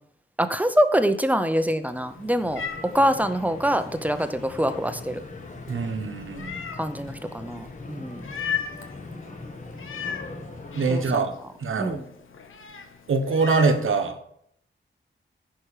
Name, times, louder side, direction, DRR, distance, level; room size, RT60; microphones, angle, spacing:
voice 1, 0.4-5.2 6.8-8.2 10.9-11.3 11.8-12.1, equal, 5° right, 10 dB, 0.7 m, -25 dB
Meow, 1.8-13.8, left 7 dB, 90° left, 1.2 m, -38 dB
sound 1, 1.9-11.2, left 3 dB, 40° left, 1.5 m, -41 dB
voice 2, 5.7-6.6 10.7-12.0 13.1-14.2, right 4 dB, 90° right, 7 dB, 1.2 m, -24 dB
15.0 x 6.0 x 4.9 m, 0.72 s
wide cardioid pair, 120°, 20 cm